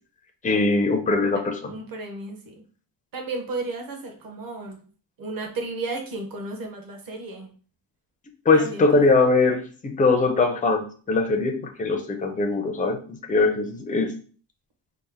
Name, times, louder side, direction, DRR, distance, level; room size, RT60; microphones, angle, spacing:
voice 1, 0.4-1.8 8.5-14.1, left 3 dB, 20° left, 5 dB, 0.3 m, -21 dB
voice 2, 1.7-2.6 3.1-4.8 5.2-7.5 8.5-9.1, right 3 dB, 45° right, 3 dB, 0.9 m, -33 dB
4.2 x 2.0 x 3.4 m, 0.42 s
wide cardioid pair, 150°, 47 cm